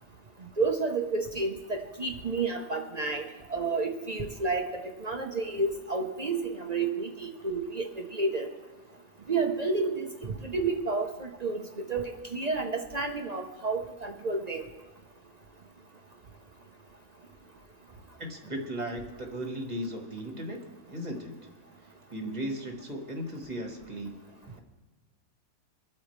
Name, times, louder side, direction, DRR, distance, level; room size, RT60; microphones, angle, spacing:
voice 1, 0.6-3.2 3.5-8.5 9.3-11.6 11.9-14.7, right 3 dB, 50° right, 4 dB, 0.5 m, -30 dB
voice 2, 18.2-20.6 20.9-21.3 22.1-24.2, equal, 25° right, 2 dB, 1.4 m, -36 dB
24.5 x 8.5 x 3.2 m, 1.2 s
omnidirectional pair, 1.9 m